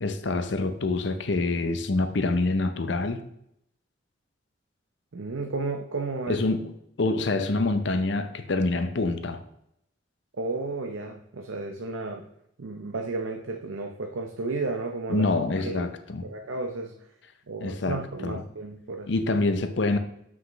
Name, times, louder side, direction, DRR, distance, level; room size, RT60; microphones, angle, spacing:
voice 1, 0.0-3.2 6.3-6.7 7.0-9.4 15.1-16.3 17.6-18.4 19.1-20.0, left 2 dB, 65° left, 9 dB, 0.7 m, -26 dB
voice 2, 5.1-6.4 10.4-12.2 12.6-15.3 15.6-15.9 16.3-16.9 17.5-19.1, right 3 dB, 90° right, 3 dB, 0.7 m, -32 dB
7.4 x 6.0 x 3.1 m, 0.75 s
head